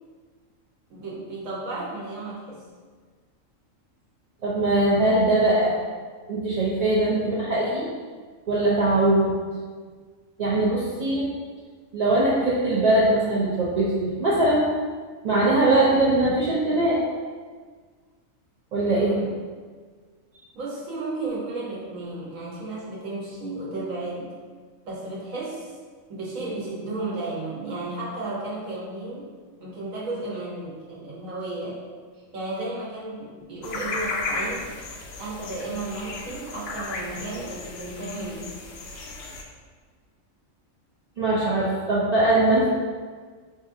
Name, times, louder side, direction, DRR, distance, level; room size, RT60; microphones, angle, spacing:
voice 1, 0.9-2.6 10.7-11.0 18.8-19.4 20.5-24.3 24.8-25.8 26.1-29.3 29.6-31.8 32.3-34.7 35.2-38.5, right 2 dB, 80° right, -6 dB, 1.3 m, -33 dB
voice 2, 4.4-5.8 6.3-7.8 8.5-9.3 10.4-11.3 11.9-14.7 15.2-17.0 18.7-19.2 41.2-42.7, right 2 dB, 50° right, -8 dB, 0.5 m, -21 dB
sound 1, 33.6-39.4, left 3 dB, 65° left, 0.7 m, -34 dB
5.1 x 2.5 x 2.5 m, 1.6 s
omnidirectional pair, 1.4 m